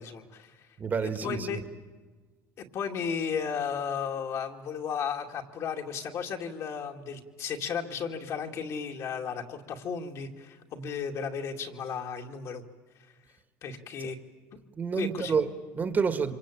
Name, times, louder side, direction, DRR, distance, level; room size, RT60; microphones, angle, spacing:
voice 1, 0.0-0.7 1.0-1.6 2.6-12.6 13.6-14.2 15.0-15.3, left 6 dB, 50° left, 3 dB, 2.4 m, -34 dB
voice 2, 0.8-1.6 14.0-14.1 14.7-16.3, right 5 dB, 25° right, 10 dB, 1.8 m, -29 dB
26.0 x 25.0 x 8.7 m, 1.3 s
cardioid pair, 145°, 7 cm